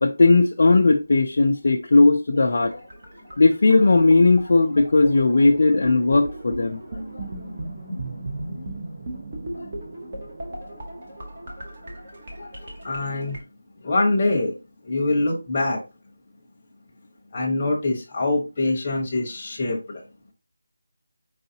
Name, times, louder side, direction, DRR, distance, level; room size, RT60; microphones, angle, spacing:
voice 1, 0.0-2.8 3.4-6.8 7.2-7.3 9.5-9.7 12.4-12.5, left 3 dB, 35° left, 0.4 m, -17 dB
sound 1, 2.5-13.4, right 1 dB, 20° right, 0.8 m, -37 dB
voice 2, 7.9-8.8 12.8-13.4 13.8-14.6 14.8-15.8 17.3-20.0, left 2 dB, 15° left, 1.0 m, -24 dB
4.7 x 3.9 x 2.8 m
figure-of-eight pair, 180°, 0 cm